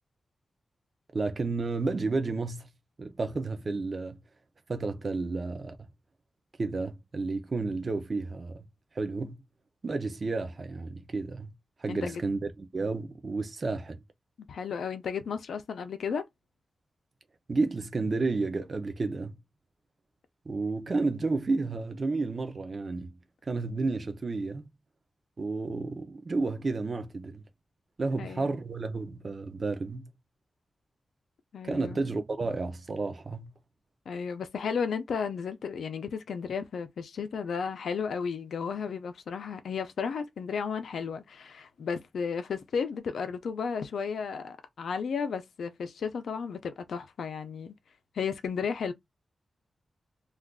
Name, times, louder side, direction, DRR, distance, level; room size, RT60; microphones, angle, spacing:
voice 1, 1.1-2.7 3.0-4.2 4.7-5.8 6.6-8.7 9.0-9.4 9.8-11.5 11.8-14.0 17.5-19.4 20.5-23.2 23.4-24.6 25.4-27.4 28.0-30.1 31.6-33.5, right 3 dB, 35° right, 0.5 m, -31 dB
voice 2, 11.9-12.2 14.5-16.2 28.2-28.6 31.5-32.1 34.1-47.7 48.1-48.9, left 6 dB, 90° left, 0.5 m, -33 dB
2.4 x 2.3 x 3.6 m
wide cardioid pair, 160°, 0 cm